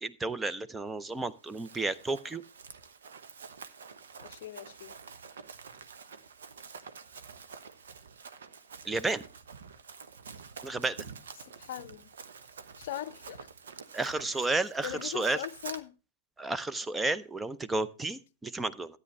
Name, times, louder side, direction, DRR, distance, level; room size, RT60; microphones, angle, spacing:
voice 1, 0.0-2.4 8.8-9.2 10.6-11.0 13.9-15.4 16.4-19.0, right 2 dB, 10° right, 0.7 m, -32 dB
Run, 1.2-15.8, right 5 dB, 70° right, 1.0 m, -48 dB
voice 2, 4.2-4.9 11.6-12.1 12.8-13.5 14.2-14.4 14.8-16.0, left 13 dB, 55° left, 0.6 m, -40 dB
13.0 x 9.5 x 3.2 m
figure-of-eight pair, 105°, 0 cm